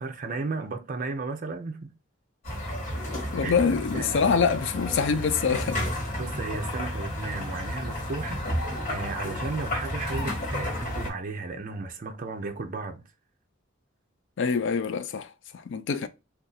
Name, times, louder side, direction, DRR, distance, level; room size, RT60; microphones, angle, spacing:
voice 1, 0.0-1.9 3.4-3.5 3.9-4.4 6.2-13.0, right 3 dB, 40° right, 0.5 m, -34 dB
sound 1, 2.4-11.1, left 1 dB, 35° left, 1.6 m, -32 dB
voice 2, 3.3-5.8 14.4-15.3 15.7-16.1, left 5 dB, 60° left, 0.4 m, -25 dB
2.6 x 2.4 x 3.8 m
head